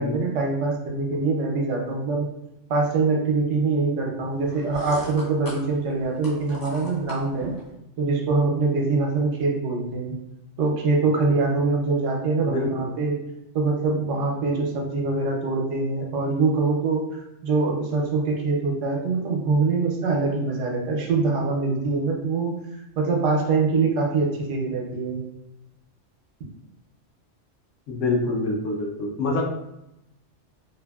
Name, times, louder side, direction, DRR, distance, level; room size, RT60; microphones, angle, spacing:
voice 1, 0.0-2.3 2.7-7.5 8.0-10.1 10.6-13.2 13.5-22.6 23.0-25.2, right 3 dB, 75° right, 0 dB, 1.0 m, -24 dB
sound 1, 4.4-7.7, equal, 25° left, 0.5 m, -40 dB
voice 2, 12.4-12.9 27.9-29.4, left 2 dB, 75° left, 0 dB, 0.9 m, -26 dB
2.7 x 2.5 x 2.3 m, 0.86 s
omnidirectional pair, 1.3 m